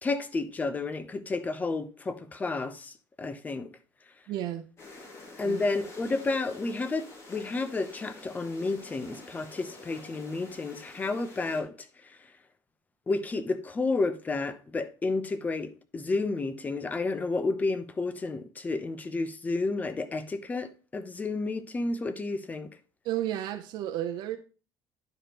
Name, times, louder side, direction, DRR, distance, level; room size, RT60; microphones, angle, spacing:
voice 1, 0.0-3.7 5.4-11.7 13.1-22.7, left 3 dB, 20° left, 0.7 m, -31 dB
voice 2, 4.3-4.7 5.4-5.6 23.0-24.4, right 12 dB, 70° right, 0.6 m, -32 dB
sound 1, 4.8-11.6, left 2 dB, 35° left, 2.2 m, -48 dB
10.5 x 5.0 x 2.9 m
cardioid pair, 120°, 8 cm